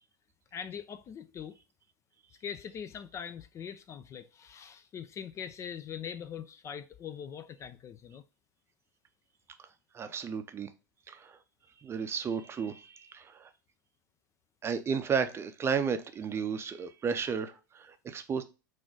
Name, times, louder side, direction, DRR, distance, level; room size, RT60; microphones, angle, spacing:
voice 1, 0.5-1.6 2.4-8.2, left 8 dB, 30° left, 0.3 m, -42 dB
voice 2, 9.9-10.7 11.1-11.4 11.8-13.5 14.6-18.4, right 6 dB, 25° right, 0.5 m, -33 dB
3.8 x 2.5 x 3.7 m
hypercardioid pair, 95°, 11 cm